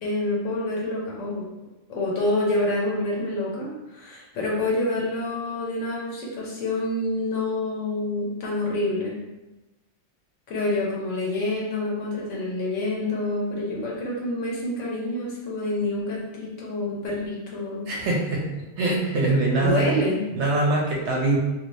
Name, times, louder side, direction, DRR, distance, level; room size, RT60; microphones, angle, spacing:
voice 1, 0.0-1.5 1.9-9.2 10.5-17.8 19.6-20.2, left 2 dB, 90° left, -4 dB, 1.1 m, -27 dB
voice 2, 17.9-18.5 18.8-19.9 20.3-21.4, right 2 dB, 75° right, -2 dB, 0.9 m, -23 dB
2.6 x 2.6 x 3.1 m, 1.1 s
omnidirectional pair, 1.3 m